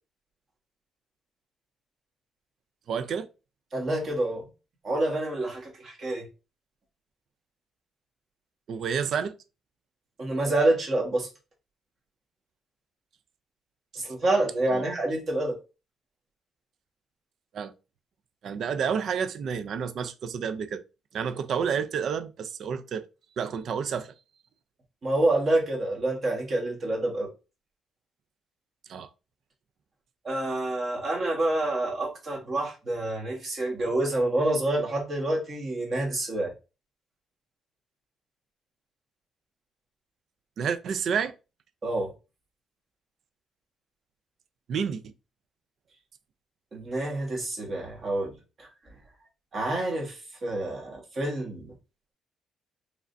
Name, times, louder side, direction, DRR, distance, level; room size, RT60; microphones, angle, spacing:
voice 1, 2.9-3.3 8.7-9.3 14.7-14.8 17.5-17.7 18.4-20.8 21.1-23.1 23.4-24.1 28.9-29.1 40.6-41.3 44.7-45.1, right 7 dB, 60° right, 0.4 m, -30 dB
voice 2, 3.7-4.5 4.8-6.3 10.2-11.3 14.0-15.6 25.0-27.3 30.2-36.5 41.8-42.1 46.7-48.7 49.5-51.7, right 2 dB, 40° right, 1.5 m, -27 dB
4.8 x 3.3 x 2.6 m
cardioid pair, 150°, 0 cm